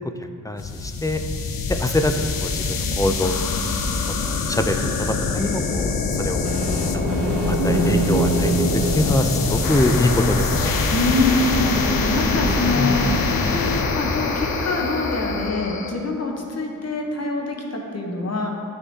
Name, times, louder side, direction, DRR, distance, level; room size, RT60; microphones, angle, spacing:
voice 1, 0.4-1.2 1.7-3.3 4.1-6.5 6.9-8.5 8.9-10.8 12.8-13.0, left 1 dB, 10° left, 6 dB, 0.4 m, -24 dB
sound 1, 0.6-15.9, left 4 dB, 80° left, 0.5 m, -24 dB
sound 2, 6.1-10.1, right 2 dB, 85° right, 0.7 m, -25 dB
sound 3, 6.4-13.3, right 1 dB, 45° right, 1.0 m, -30 dB
voice 2, 10.9-18.5, left 2 dB, 50° left, 1 dB, 1.0 m, -24 dB
9.5 x 3.8 x 2.7 m, 2.5 s
cardioid pair, 45°, 34 cm